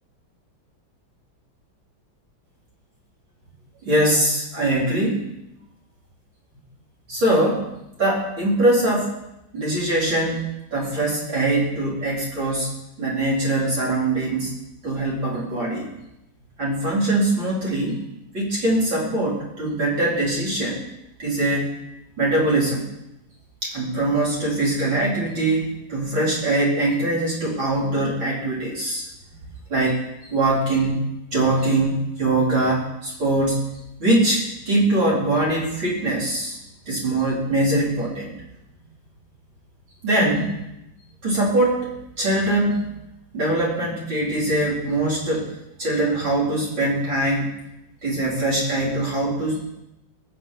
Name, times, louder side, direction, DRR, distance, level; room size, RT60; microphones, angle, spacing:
voice 1, 3.8-5.2 7.1-7.6 8.0-9.2 9.5-12.7 13.0-14.5 14.8-15.9 16.6-18.0 18.3-20.8 21.2-21.7 22.2-22.8 23.6-29.0 29.7-30.0 30.3-31.0 31.3-33.6 34.0-36.6 36.9-38.3 40.0-40.5 41.2-42.9 43.3-45.4 45.8-47.5 48.0-49.6, right 2 dB, 75° right, -5 dB, 5.1 m, -22 dB
20.5 x 7.0 x 5.6 m, 0.87 s
omnidirectional pair, 2.1 m